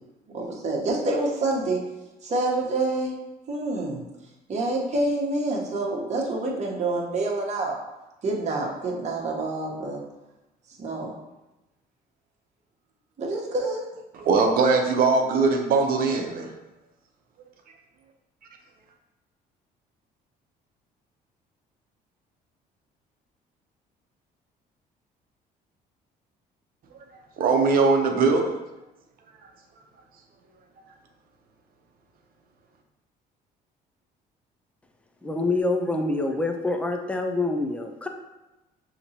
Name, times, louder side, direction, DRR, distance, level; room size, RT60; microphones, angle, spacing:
voice 1, 0.3-1.8 2.2-3.1 3.5-4.0 4.5-7.8 8.2-10.0 10.8-11.1 13.2-13.9, right 2 dB, 40° right, -2 dB, 1.1 m, -27 dB
voice 2, 14.1-16.5 27.4-28.5, right 4 dB, 60° right, 3 dB, 0.8 m, -21 dB
voice 3, 35.2-38.1, left 2 dB, 5° left, 5 dB, 0.5 m, -26 dB
6.4 x 2.9 x 2.8 m, 1.0 s
cardioid pair, 110°, 17 cm